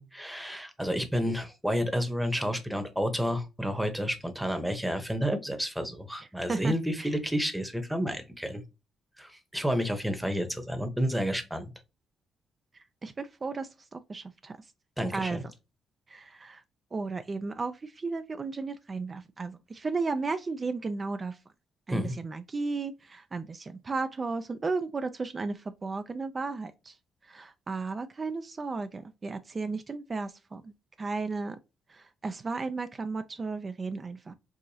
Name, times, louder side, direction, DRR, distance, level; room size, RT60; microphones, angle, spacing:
voice 1, 0.0-8.6 9.2-11.7 15.0-15.4 21.9-22.2, equal, 5° right, 0.9 m, -30 dB
voice 2, 6.5-7.1 13.0-14.6 15.1-15.4 16.1-16.6 16.9-21.4 21.9-26.9 27.3-30.7 31.0-31.6 31.9-34.3, right 4 dB, 30° right, 0.4 m, -34 dB
4.8 x 2.5 x 2.7 m
cardioid pair, 90°, 0 cm